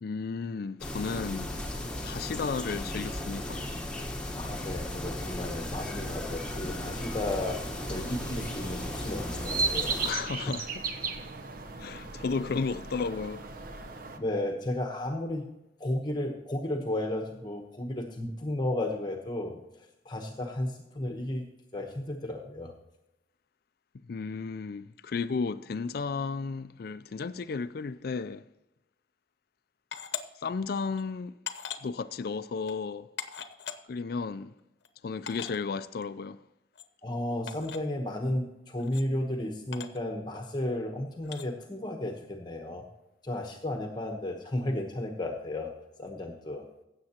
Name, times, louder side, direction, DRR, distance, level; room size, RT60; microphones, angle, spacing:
voice 1, 0.0-1.5 2.0-3.7 10.0-10.8 11.8-13.5 24.1-28.4 30.4-31.3 31.8-33.1 33.9-34.5 35.0-36.4, left 4 dB, 55° left, 0.4 m, -33 dB
sound 1, 0.8-10.1, left 1 dB, 5° left, 1.2 m, -36 dB
voice 2, 4.3-7.6 7.9-10.0 14.2-15.5 15.8-21.5 21.7-22.7 37.0-42.8 43.2-45.7 46.0-46.7, left 1 dB, 25° left, 1.0 m, -33 dB
sound 2, 5.8-14.2, right 4 dB, 50° right, 0.9 m, -37 dB
sound 3, 29.9-30.2 30.9-31.0 31.5-31.9 32.7-32.8 33.2-33.8 34.6-34.7 34.8-34.9 35.3-35.6 36.8-36.9 37.5-37.8 38.8-39.0 39.7-40.0 41.2-41.5, left 8 dB, 70° left, 0.8 m, -39 dB
16.0 x 7.6 x 2.9 m
head